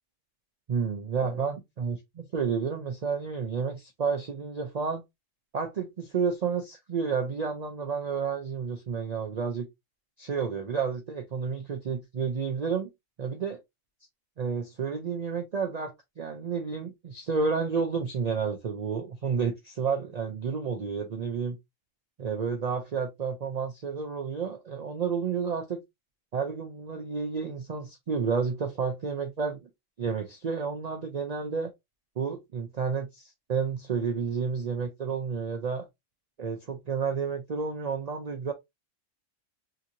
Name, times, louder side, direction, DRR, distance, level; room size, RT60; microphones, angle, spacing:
voice 1, 0.7-5.0 5.5-9.7 10.2-12.9 13.2-13.6 14.4-21.6 22.2-25.8 26.3-29.7 30.0-31.7 32.2-35.9 36.4-38.5, right 5 dB, 75° right, 0.3 m, -31 dB
2.9 x 2.5 x 2.7 m
omnidirectional pair, 1.3 m